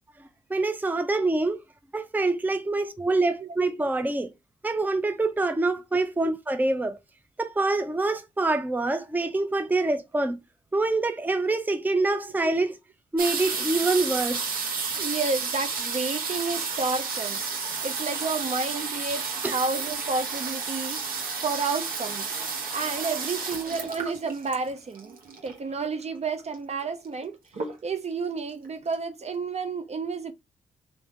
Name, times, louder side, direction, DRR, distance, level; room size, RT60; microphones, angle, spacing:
voice 1, 0.5-1.6 1.9-4.3 4.6-7.0 7.4-10.4 10.7-12.8 13.1-14.5 19.4-19.6, right 2 dB, 10° right, 0.6 m, -25 dB
sound 1, 13.2-25.7 26.5-26.6 26.8-27.2 27.5-28.1 28.6-28.7 28.9-29.0, right 5 dB, 60° right, 1.2 m, -31 dB
voice 2, 15.0-17.4 17.8-21.0 21.4-22.4 22.7-25.2 25.4-27.4 27.8-30.3, right 4 dB, 40° right, 0.8 m, -30 dB
3.5 x 2.7 x 4.3 m
hypercardioid pair, 40°, 17 cm